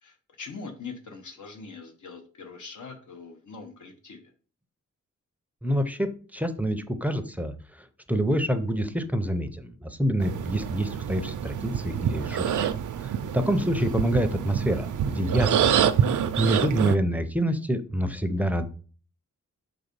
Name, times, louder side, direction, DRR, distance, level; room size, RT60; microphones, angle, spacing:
voice 1, 0.0-4.3 13.5-14.0, left 4 dB, 75° left, 3 dB, 1.0 m, -42 dB
voice 2, 5.6-12.7 13.0-15.8 16.1-18.7, equal, 5° right, 8 dB, 0.5 m, -27 dB
sound 1, 10.2-17.0, right 8 dB, 90° right, 0.5 m, -26 dB
4.6 x 4.0 x 5.2 m, 0.41 s
wide cardioid pair, 130°, 30 cm